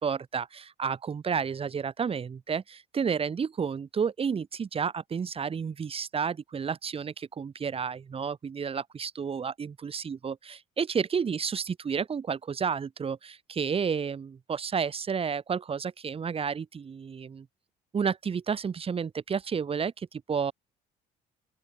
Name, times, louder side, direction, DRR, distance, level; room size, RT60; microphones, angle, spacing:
voice 1, 0.0-10.3 10.8-17.5 17.9-20.5, right 6 dB, 35° right, 2.6 m, -31 dB
open air
cardioid pair, 110°, 17 cm